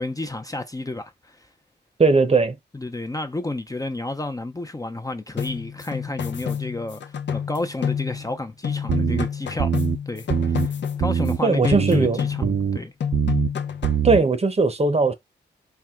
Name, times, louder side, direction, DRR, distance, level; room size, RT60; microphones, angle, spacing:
voice 1, 0.0-1.5 2.7-9.7 10.1-12.4 12.7-12.9, left 2 dB, 20° left, 0.6 m, -31 dB
voice 2, 2.0-2.6 11.4-12.6 14.0-15.1, right 3 dB, 35° right, 0.8 m, -19 dB
sound 1, 5.4-8.4 8.6-11.3 11.6-12.7 13.0-14.1, left 7 dB, 75° left, 0.6 m, -29 dB
sound 2, 8.9-9.2 9.6-10.0 10.3-10.7 11.0-11.4 11.7-12.1 12.4-12.8 13.1-13.5 13.8-14.2, right 8 dB, 65° right, 0.7 m, -23 dB
4.4 x 2.1 x 3.6 m
cardioid pair, 70°, 19 cm